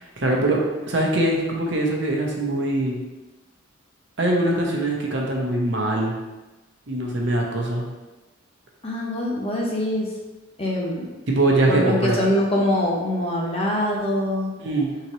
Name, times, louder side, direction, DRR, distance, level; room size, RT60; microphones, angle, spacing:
voice 1, 0.0-3.0 4.2-6.1 6.9-7.9 11.3-12.2 14.6-14.9, right 1 dB, 60° right, -1 dB, 0.8 m, -22 dB
voice 2, 8.8-10.1 10.6-11.1 11.7-14.5, left 1 dB, 30° left, -2 dB, 0.8 m, -24 dB
4.3 x 3.9 x 3.0 m, 1.1 s
head